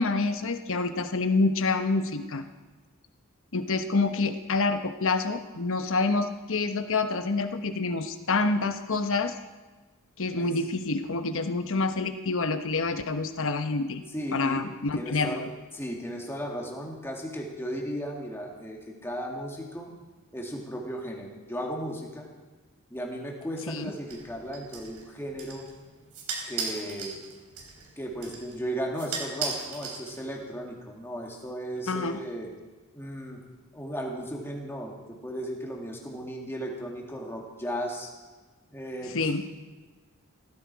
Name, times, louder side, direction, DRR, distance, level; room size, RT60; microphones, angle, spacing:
voice 1, 0.0-2.4 3.5-9.4 10.2-14.0 14.3-15.5 23.7-23.9 31.9-32.2 39.1-39.4, left 3 dB, 60° left, 8 dB, 1.1 m, -27 dB
voice 2, 14.1-14.6 14.9-15.4 15.7-20.0 20.3-22.3 22.9-25.7 26.5-27.3 28.0-32.5 32.9-33.4 33.7-38.1 38.7-39.3, equal, 10° left, 0 dB, 2.3 m, -35 dB
sound 1, 24.1-30.5, right 5 dB, 80° right, 3.8 m, -38 dB
16.5 x 14.5 x 4.8 m, 1.3 s
head